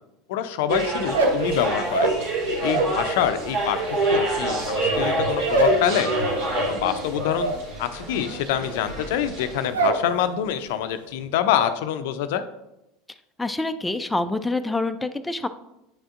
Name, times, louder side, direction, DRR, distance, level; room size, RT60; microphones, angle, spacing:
voice 1, 0.3-2.1 2.6-3.8 4.1-6.1 6.6-7.5 7.8-12.4, left 10 dB, 70° left, 10 dB, 0.4 m, -26 dB
sound 1, 0.7-9.7, right 2 dB, 60° right, 1.9 m, -27 dB
sound 2, 1.0-3.0 3.3-10.1 10.4-10.9 11.2-11.7, right 2 dB, 85° right, 0.8 m, -26 dB
voice 2, 13.4-15.5, left 2 dB, 10° left, 8 dB, 0.4 m, -26 dB
8.6 x 5.0 x 2.5 m, 0.91 s
hypercardioid pair, 85°, 0 cm